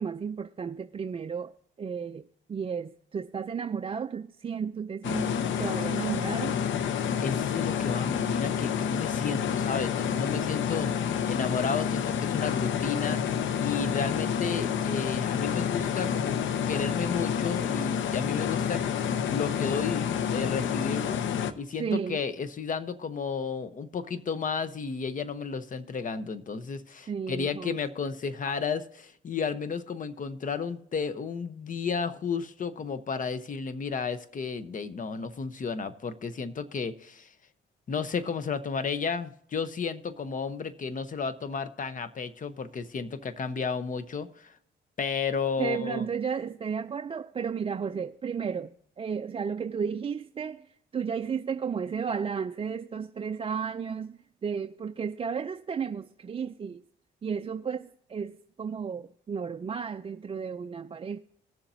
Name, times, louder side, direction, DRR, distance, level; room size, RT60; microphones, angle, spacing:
voice 1, 0.0-1.5 1.8-6.6 21.8-22.2 27.1-27.7 45.6-50.7 50.9-54.1 54.4-56.8 57.2-61.2, right 6 dB, 30° right, 0.4 m, -33 dB
sound 1, 5.0-21.5, left 8 dB, 70° left, 0.7 m, -29 dB
voice 2, 7.2-16.4 16.7-19.0 19.3-21.2 21.5-37.3 37.9-44.5 45.0-46.1, left 5 dB, 40° left, 0.9 m, -33 dB
18.5 x 7.2 x 2.7 m
cardioid pair, 90°, 20 cm